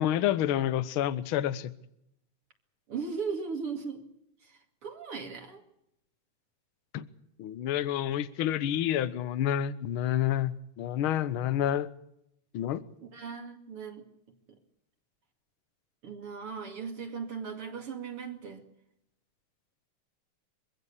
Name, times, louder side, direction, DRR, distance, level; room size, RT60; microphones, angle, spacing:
voice 1, 0.0-1.7 6.9-7.0 7.4-11.9 12.5-12.8, left 11 dB, 60° left, 1.4 m, -29 dB
voice 2, 2.9-4.1 4.4-5.6 13.0-14.0 14.5-14.6 16.0-18.6, right 5 dB, 50° right, 3.0 m, -38 dB
24.0 x 16.0 x 8.4 m
omnidirectional pair, 3.4 m